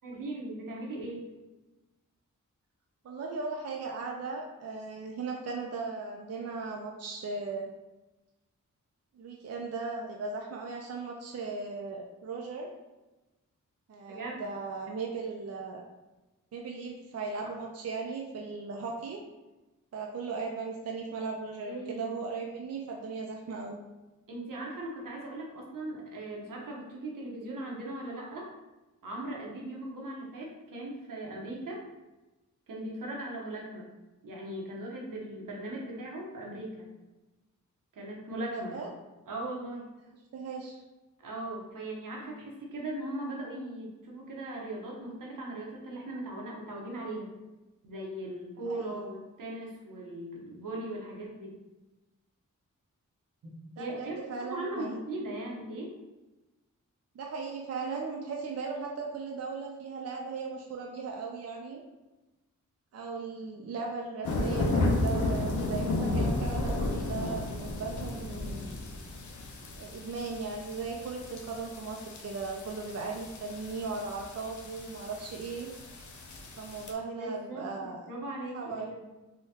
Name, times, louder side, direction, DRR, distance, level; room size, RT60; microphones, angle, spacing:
voice 1, 0.0-1.3 14.1-14.4 17.4-17.5 21.6-22.2 24.3-28.5 29.0-31.8 32.7-33.9 34.2-36.9 37.9-38.7 39.3-39.9 41.2-47.3 47.8-51.6 53.4-54.2 54.5-55.9 77.2-79.1, right 1 dB, 80° right, -2 dB, 0.8 m, -39 dB
voice 2, 3.0-7.7 9.1-12.7 13.9-15.9 16.5-19.2 19.9-23.8 38.5-38.9 40.3-40.8 48.7-49.0 53.8-55.0 57.1-61.8 62.9-68.6 69.7-75.7 76.6-78.1 78.5-78.9, right 4 dB, 50° right, 0 dB, 0.4 m, -37 dB
sound 1, 64.2-76.9, left 2 dB, 65° left, 0.5 m, -33 dB
3.5 x 2.2 x 2.8 m, 1.1 s
cardioid pair, 65°, 32 cm